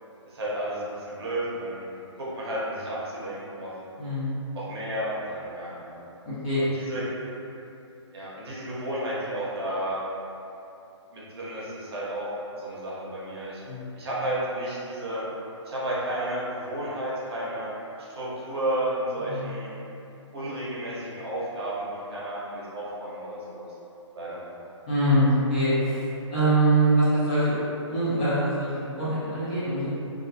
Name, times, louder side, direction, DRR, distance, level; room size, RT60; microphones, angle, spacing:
voice 1, 0.3-1.9 2.2-3.7 4.5-6.0 6.7-7.0 8.1-10.0 11.1-13.6 14.0-15.2 15.7-17.7 18.0-19.7 20.3-23.7 24.1-24.4, right 1 dB, 55° right, -7 dB, 0.8 m, -32 dB
voice 2, 4.0-4.4 6.2-6.6 13.7-14.0 19.2-19.5 24.9-27.6 27.9-29.9, right 1 dB, 15° left, -13 dB, 0.3 m, -24 dB
2.3 x 2.0 x 2.7 m, 2.8 s
hypercardioid pair, 165°, 16 cm